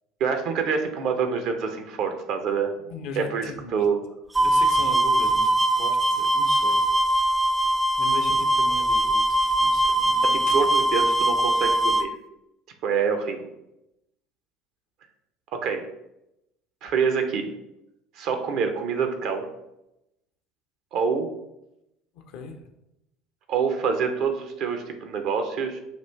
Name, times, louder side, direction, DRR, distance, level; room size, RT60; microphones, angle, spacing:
voice 1, 0.2-2.7 3.2-4.0 10.5-12.1 12.8-13.5 15.5-15.8 16.8-17.5 18.2-19.5 20.9-21.3 23.5-25.8, right 6 dB, 55° right, 6 dB, 0.7 m, -26 dB
voice 2, 2.9-3.8 4.4-6.8 7.6-7.7 8.0-10.5 22.1-22.6, left 4 dB, 60° left, 6 dB, 0.6 m, -38 dB
sound 1, 4.3-12.0, right 1 dB, 15° right, 0.3 m, -21 dB
5.9 x 2.5 x 3.3 m, 0.86 s
figure-of-eight pair, 65°, 0 cm